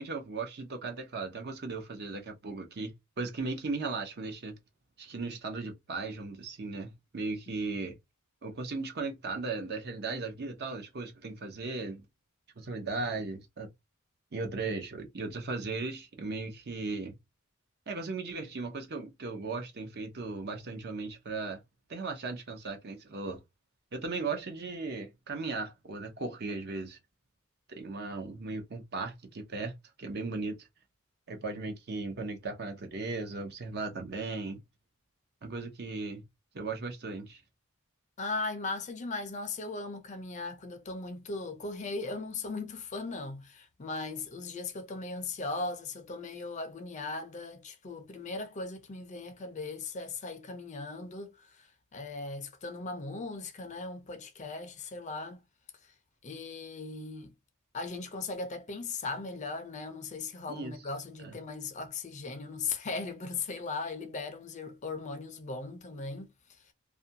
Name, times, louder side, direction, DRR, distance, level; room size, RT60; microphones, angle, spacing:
voice 1, 0.0-4.5 5.0-8.0 8.4-12.0 12.6-13.7 14.3-17.1 17.9-21.6 21.9-23.4 23.9-27.0 27.7-29.7 30.0-30.7 31.3-34.6 35.4-36.2 36.5-37.4 60.5-60.7 61.2-61.4, right 3 dB, 50° right, 0.6 m, -37 dB
voice 2, 38.2-55.4 55.8-55.9 56.2-57.3 57.7-66.7, left 3 dB, 35° left, 0.5 m, -38 dB
2.4 x 2.2 x 2.7 m
head